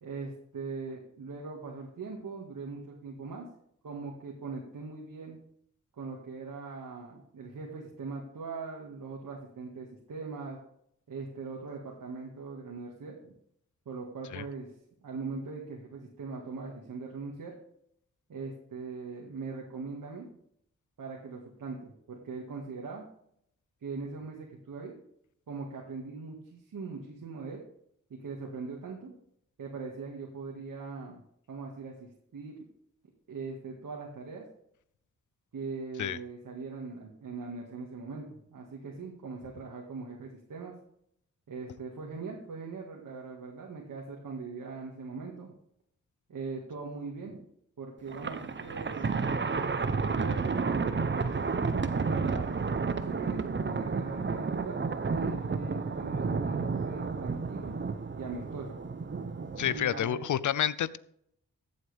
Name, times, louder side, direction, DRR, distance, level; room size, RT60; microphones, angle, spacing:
voice 1, 0.0-3.5 3.8-5.4 5.9-10.6 11.1-13.3 13.9-14.7 15.0-17.5 18.3-20.3 21.0-23.1 23.8-25.0 25.5-27.6 28.1-29.1 29.6-31.2 31.5-32.6 33.3-34.4 35.5-40.7 41.5-45.5 46.3-47.4 47.8-49.2 50.2-54.8 55.1-57.8 58.1-58.8 59.7-60.3, right 4 dB, 75° right, -1 dB, 2.0 m, -41 dB
Thunder, 48.1-59.9, right 4 dB, 35° right, 0.9 m, -31 dB
voice 2, 59.6-61.0, left 10 dB, 70° left, 19 dB, 0.6 m, -29 dB
14.0 x 7.9 x 3.5 m, 0.71 s
cardioid pair, 55°, 32 cm